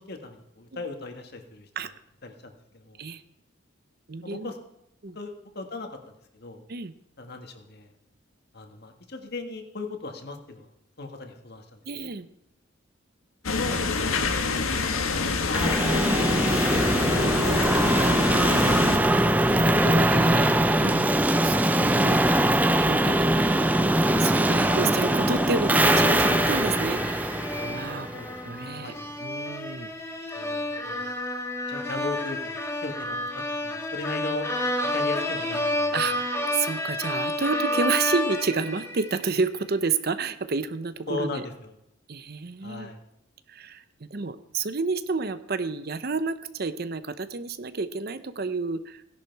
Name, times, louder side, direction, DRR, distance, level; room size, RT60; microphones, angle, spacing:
voice 1, 0.0-1.7 2.2-3.0 4.2-4.6 5.1-6.1 6.4-6.6 7.2-7.9 8.5-10.7 11.0-11.6 12.0-12.1 13.4-14.3 14.6-14.7 15.1-18.0 21.5-21.7 24.6-25.0 28.1-29.1 30.3-31.0 31.7-34.5 34.9-36.0 41.1-41.7 42.6-43.0, left 3 dB, 50° left, 5 dB, 1.7 m, -38 dB
voice 2, 4.1-4.5 5.0-5.2 6.7-6.9 11.8-12.3 17.9-18.1 18.8-21.1 21.4-22.5 22.8-28.1 28.4-29.9 35.9-41.4 42.1-42.9 43.5-49.0, right 4 dB, 50° right, 12 dB, 0.7 m, -30 dB
sound 1, 13.4-19.0, left 4 dB, 85° left, 1.5 m, -26 dB
sound 2, 15.5-28.4, right 1 dB, 10° right, 0.5 m, -22 dB
sound 3, 25.7-39.4, left 1 dB, 15° left, 1.7 m, -30 dB
17.0 x 11.0 x 4.7 m, 0.81 s
head